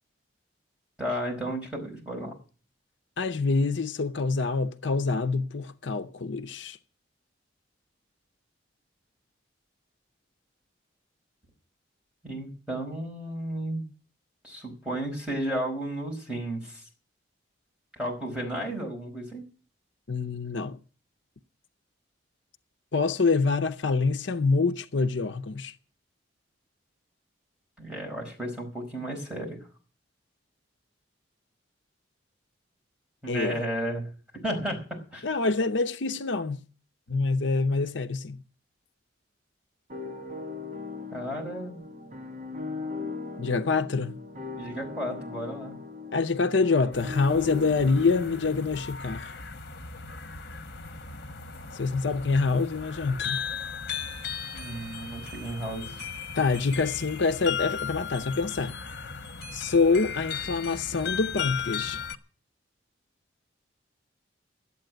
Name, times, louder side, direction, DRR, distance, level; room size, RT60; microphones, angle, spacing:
voice 1, 1.0-2.3 12.2-13.8 14.4-16.8 18.0-19.4 27.8-29.6 33.2-34.1 34.4-34.8 35.1-35.2 37.1-37.2 41.1-41.8 44.6-45.8 54.5-56.0, right 1 dB, 5° right, 4.9 m, -33 dB
voice 2, 3.2-6.8 20.1-20.8 22.9-25.7 33.3-33.6 35.2-36.6 37.1-38.4 43.4-44.2 46.1-49.3 51.7-53.4 56.4-58.8 59.5-62.0, left 4 dB, 70° left, 0.7 m, -26 dB
sound 1, 39.9-48.8, left 4 dB, 40° right, 1.4 m, -39 dB
sound 2, 46.9-62.2, left 6 dB, 55° left, 1.2 m, -37 dB
12.0 x 8.5 x 9.1 m
head